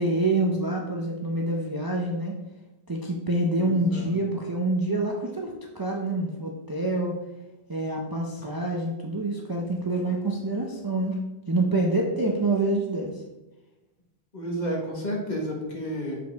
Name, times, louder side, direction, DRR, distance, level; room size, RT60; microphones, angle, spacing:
voice 1, 0.0-2.4 2.9-7.1 7.7-11.2 11.5-13.2, right 2 dB, 25° right, -1 dB, 0.6 m, -26 dB
voice 2, 3.6-4.1 14.3-16.2, equal, 40° left, -2 dB, 1.5 m, -31 dB
6.6 x 5.0 x 3.4 m, 1.1 s
omnidirectional pair, 1.1 m